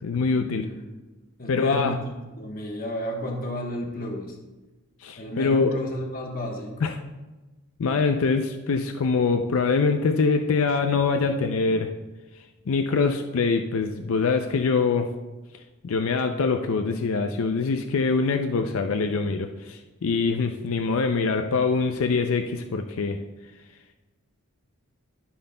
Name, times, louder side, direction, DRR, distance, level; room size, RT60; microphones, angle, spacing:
voice 1, 0.0-0.7 1.5-2.0 5.0-5.7 6.8-6.9 7.8-11.9 12.7-15.1 15.8-23.2, left 4 dB, 65° left, 6 dB, 0.5 m, -24 dB
voice 2, 1.4-4.4 5.2-6.9, equal, 40° left, 1 dB, 1.1 m, -32 dB
14.0 x 5.9 x 2.2 m, 1.2 s
head